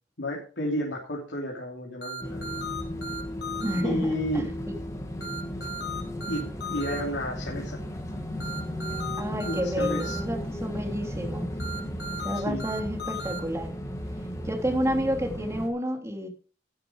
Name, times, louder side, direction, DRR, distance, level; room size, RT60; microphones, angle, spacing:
voice 1, 0.2-2.5 3.8-4.5 6.3-7.8 9.4-10.2 12.3-12.6, equal, 85° left, -3 dB, 3.2 m, -32 dB
sound 1, 2.0-3.8 5.2-7.0 8.4-10.2 11.6-13.4, equal, 70° left, 3.2 m, -36 dB
sound 2, 2.2-15.7, equal, 20° left, 2.1 m, -35 dB
voice 2, 3.6-4.5 9.2-11.5 12.1-13.7 14.4-16.3, equal, 15° right, 2 dB, 2.8 m, -30 dB
12.5 x 8.9 x 4.8 m, 0.39 s
head